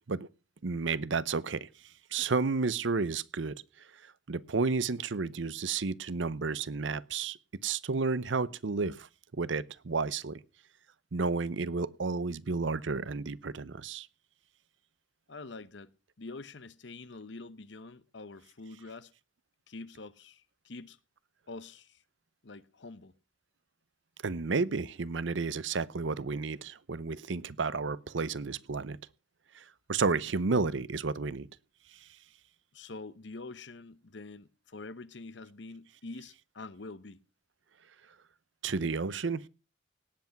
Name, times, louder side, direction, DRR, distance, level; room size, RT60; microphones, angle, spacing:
voice 1, 0.6-1.7 2.1-3.6 4.3-7.4 7.6-9.1 9.4-10.4 11.1-14.1 24.2-29.0 29.5-31.5 38.6-39.5, right 4 dB, 75° right, 0.7 m, -31 dB
voice 2, 15.3-15.9 16.2-19.1 19.7-21.0 21.5-22.0 22.4-23.1 32.7-37.2, left 3 dB, 65° left, 0.9 m, -46 dB
18.0 x 8.1 x 5.8 m
head